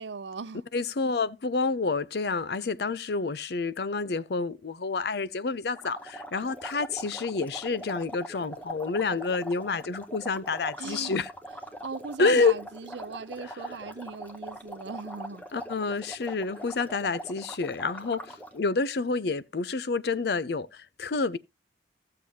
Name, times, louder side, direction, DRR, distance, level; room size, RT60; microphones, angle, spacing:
voice 1, 0.0-0.6 10.8-11.2 11.8-15.5, right 4 dB, 85° right, 0.6 m, -38 dB
voice 2, 0.7-11.3 12.2-12.5 15.5-21.4, left 4 dB, 70° left, 0.6 m, -28 dB
sound 1, 5.8-18.6, right 1 dB, 10° left, 0.9 m, -42 dB
15.5 x 6.8 x 2.8 m
head